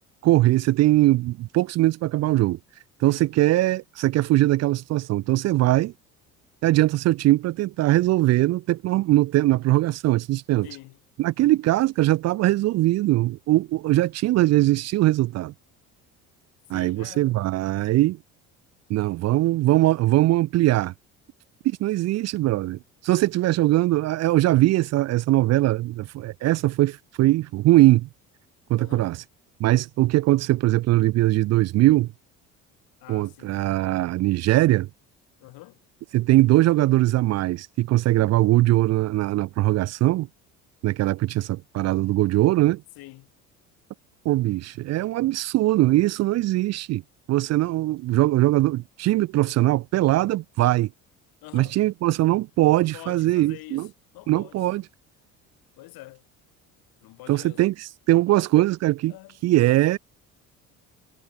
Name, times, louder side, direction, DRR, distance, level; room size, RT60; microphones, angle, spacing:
voice 1, 0.2-2.6 3.0-5.9 6.6-10.7 11.2-15.5 16.7-18.2 18.9-20.9 21.6-28.1 28.7-29.2 29.6-32.1 33.1-34.9 36.1-40.3 40.8-42.8 44.3-47.0 47.3-50.9 51.5-53.9 54.3-54.8 57.3-59.1 59.4-60.0, right 16 dB, 45° right, 0.4 m, -21 dB
voice 2, 10.6-11.0 16.7-17.5 28.8-29.1 33.0-33.6 35.4-35.8 43.0-43.3 51.4-51.8 52.9-53.9 54.1-54.6 55.8-56.2 57.0-57.6 59.1-59.4, left 19 dB, 70° left, 4.6 m, -45 dB
hypercardioid pair, 65°, 37 cm